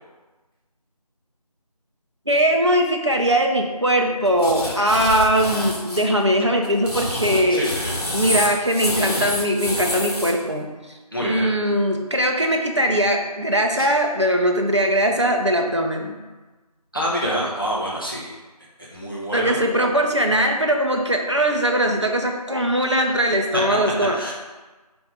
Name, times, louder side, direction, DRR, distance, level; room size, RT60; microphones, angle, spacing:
voice 1, 2.3-7.7 8.1-10.7 11.2-16.1 19.3-24.2, equal, 45° right, 2 dB, 0.7 m, -20 dB
sound 1, 4.4-6.0 6.6-10.3, left 1 dB, 65° left, 1.6 m, -27 dB
voice 2, 4.6-5.0 7.5-7.9 11.1-11.5 13.8-13.9 16.9-18.3 18.9-19.6 23.0-23.2 24.1-24.3, equal, 35° left, -5 dB, 1.0 m, -27 dB
4.5 x 4.5 x 4.9 m, 1.2 s
figure-of-eight pair, 180°, 21 cm